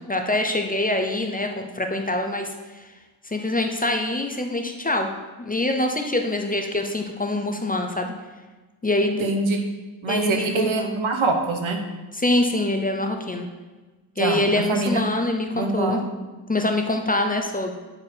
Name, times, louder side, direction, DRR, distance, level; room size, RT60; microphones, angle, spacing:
voice 1, 0.1-2.8 3.2-5.1 5.4-8.1 8.8-9.3 10.1-11.0 12.1-13.5 14.2-16.0 16.5-17.8, left 1 dB, 20° left, 4 dB, 0.6 m, -24 dB
voice 2, 9.2-9.6 10.0-11.8 14.2-15.0 15.5-16.0, right 3 dB, 85° right, 4 dB, 1.1 m, -24 dB
9.8 x 4.4 x 4.4 m, 1.2 s
wide cardioid pair, 110°, 47 cm